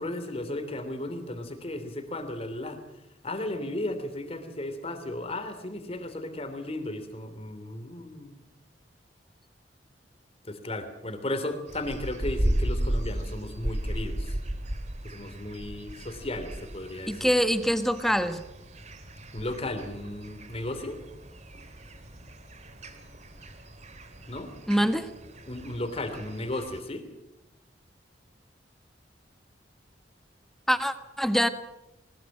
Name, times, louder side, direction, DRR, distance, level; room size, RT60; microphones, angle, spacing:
voice 1, 0.0-2.8 3.2-8.4 10.4-14.4 15.0-17.3 19.3-21.0 24.3-24.5 25.5-27.0, left 1 dB, 35° left, 9 dB, 3.2 m, -35 dB
sound 1, 11.7-26.8, right 1 dB, 40° right, 2.9 m, -35 dB
voice 2, 17.1-18.4 24.7-25.1 30.7-31.5, equal, ahead, 9 dB, 1.3 m, -24 dB
21.0 x 20.5 x 7.5 m, 0.92 s
head